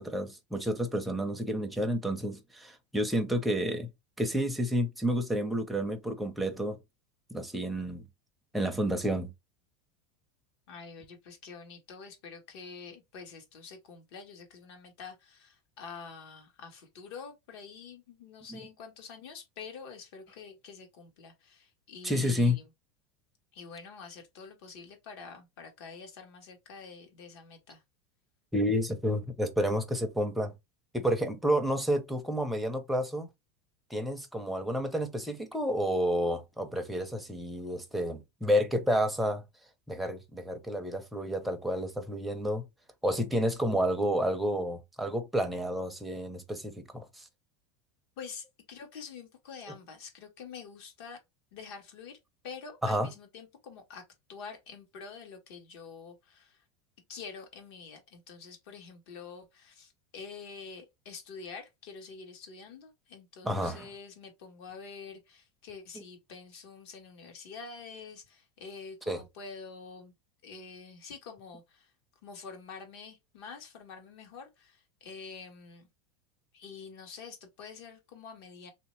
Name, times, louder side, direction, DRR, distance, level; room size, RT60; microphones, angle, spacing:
voice 1, 0.0-3.9 4.2-6.8 7.3-8.1 8.5-9.3 18.5-18.6 22.0-22.6 28.5-30.5 30.9-33.3 33.9-39.4 39.9-42.7 43.0-47.3 52.8-53.1 63.4-63.9 69.1-69.2, equal, ahead, 0.5 m, -30 dB
voice 2, 10.7-22.6 23.5-27.8 48.2-51.2 51.5-52.2 52.4-54.0 54.3-56.6 57.1-70.1 70.4-71.9 72.2-75.9 76.5-78.7, left 5 dB, 70° left, 1.3 m, -47 dB
3.2 x 2.8 x 3.0 m
supercardioid pair, 140°, 14 cm